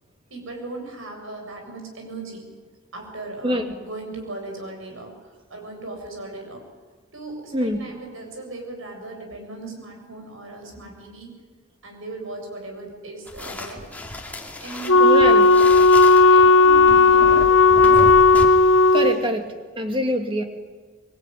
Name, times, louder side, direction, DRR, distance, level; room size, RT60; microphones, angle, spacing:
voice 1, 0.3-2.5 2.9-6.6 7.1-11.3 11.8-13.9 14.6-15.6 16.2-18.1 19.3-19.4, right 2 dB, 65° right, 2 dB, 7.6 m, -37 dB
sound 1, 13.3-18.5, left 1 dB, 5° left, 2.6 m, -33 dB
Wind instrument woodwind instrument, 14.9-19.2, left 3 dB, 60° left, 0.9 m, -14 dB
voice 2, 15.0-15.5 18.9-20.4, equal, 25° right, 5 dB, 2.5 m, -24 dB
25.0 x 23.0 x 9.5 m, 1.4 s
head